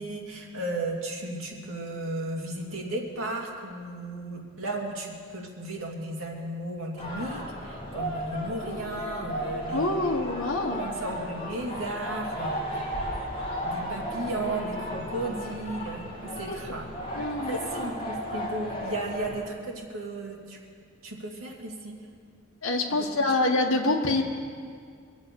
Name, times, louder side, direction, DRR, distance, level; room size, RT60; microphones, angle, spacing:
voice 1, 0.0-10.1 10.7-13.0 13.6-16.9 17.4-20.6 21.0-21.9 22.9-23.1, right 2 dB, 80° right, -1 dB, 2.5 m, -35 dB
sound 1, 7.0-19.4, equal, 25° left, 2.2 m, -35 dB
voice 2, 9.7-10.8 16.5-16.6 17.1-17.9 22.6-24.2, left 2 dB, 70° left, 0 dB, 1.4 m, -26 dB
23.5 x 8.0 x 7.0 m, 2.1 s
head